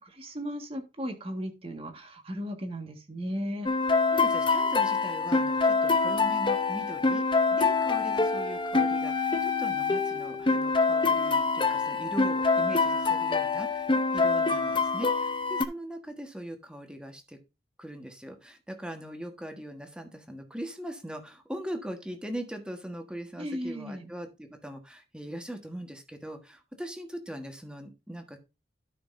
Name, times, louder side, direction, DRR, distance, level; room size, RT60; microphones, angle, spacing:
voice 1, 0.2-3.7 23.4-24.1, equal, 35° right, 5 dB, 1.7 m, -36 dB
sound 1, 3.7-15.6, left 4 dB, 30° left, 0.7 m, -25 dB
voice 2, 4.1-7.2 7.5-17.4 17.8-28.4, equal, 5° right, 5 dB, 1.4 m, -40 dB
12.5 x 6.3 x 2.6 m, 0.27 s
head